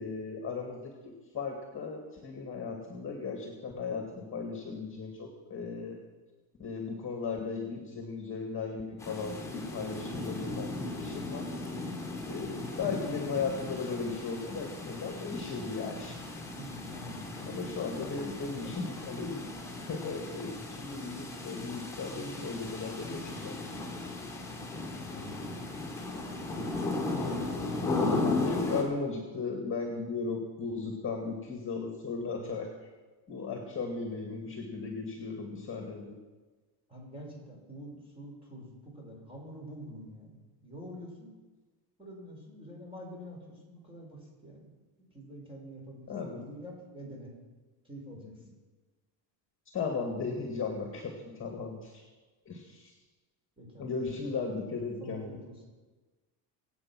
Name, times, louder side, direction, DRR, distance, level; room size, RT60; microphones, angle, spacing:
voice 1, 0.0-6.0 6.6-11.5 12.3-16.2 17.5-19.5 19.8-23.5 27.1-27.5 27.8-28.2 28.4-32.9 33.3-36.2 46.1-46.4 49.7-52.1 52.5-52.9 53.8-55.4, left 4 dB, 25° left, 3 dB, 2.3 m, -36 dB
sound 1, 9.0-28.8, left 2 dB, 5° left, 4.1 m, -36 dB
voice 2, 16.6-17.5 17.9-18.7 24.5-25.8 26.2-26.6 36.9-41.3 42.0-44.7 45.1-47.3 47.8-48.3 53.6-55.6, equal, 10° right, -1 dB, 6.0 m, -47 dB
24.5 x 8.8 x 6.2 m, 1.3 s
cardioid pair, 140°, 45 cm